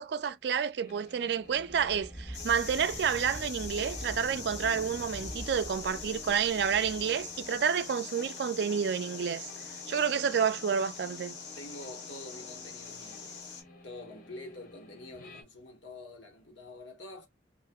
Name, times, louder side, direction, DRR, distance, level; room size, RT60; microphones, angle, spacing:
voice 1, 0.0-9.5 9.9-11.4, right 7 dB, 65° right, 0.3 m, -29 dB
sound 1, 0.8-15.4, left 1 dB, 50° left, 0.8 m, -54 dB
sound 2, 1.4-7.9, equal, 10° left, 0.4 m, -45 dB
sound 3, 2.3-13.6, left 6 dB, 70° left, 0.9 m, -43 dB
voice 2, 11.6-13.6 13.8-17.3, left 2 dB, 85° left, 1.3 m, -47 dB
2.7 x 2.4 x 2.3 m
head